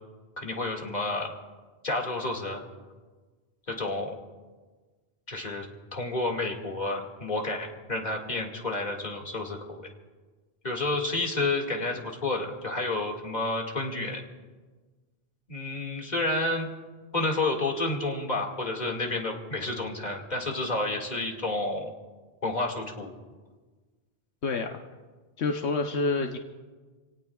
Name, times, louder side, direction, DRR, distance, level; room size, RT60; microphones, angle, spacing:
voice 1, 0.4-1.3 1.8-2.6 3.7-4.1 5.3-5.7 5.9-9.8 10.6-14.2 15.5-16.7 17.1-21.9 22.4-23.1, left 2 dB, 40° left, 0 dB, 2.2 m, -30 dB
voice 2, 24.4-24.8 25.4-26.4, left 3 dB, 80° left, 3 dB, 1.2 m, -28 dB
28.5 x 18.0 x 2.4 m, 1.4 s
omnidirectional pair, 1.1 m